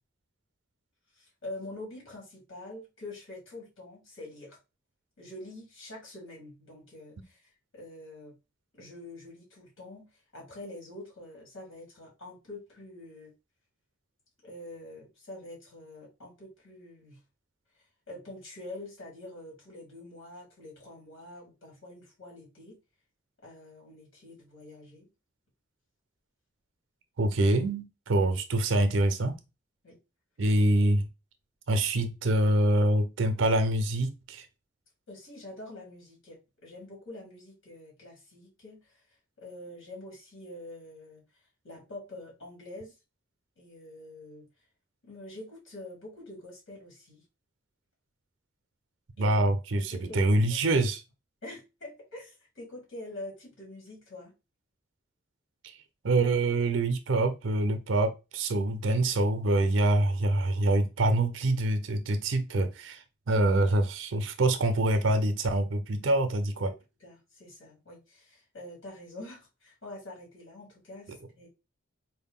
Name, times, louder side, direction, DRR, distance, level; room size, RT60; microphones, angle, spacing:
voice 1, 1.2-4.6 5.2-8.3 8.7-13.3 14.4-17.2 18.1-22.8 23.4-25.1 29.8-30.0 35.1-39.0 39.4-41.2 41.6-42.9 43.6-44.5 45.0-47.2 49.2-49.4 49.7-50.3 51.4-54.3 66.7-71.5, left 1 dB, 75° left, 2.2 m, -46 dB
voice 2, 27.2-29.4 30.4-31.1 31.7-34.5 49.2-51.0 55.6-55.8 56.0-66.7, right 2 dB, 75° right, 0.5 m, -25 dB
4.4 x 2.1 x 3.6 m
head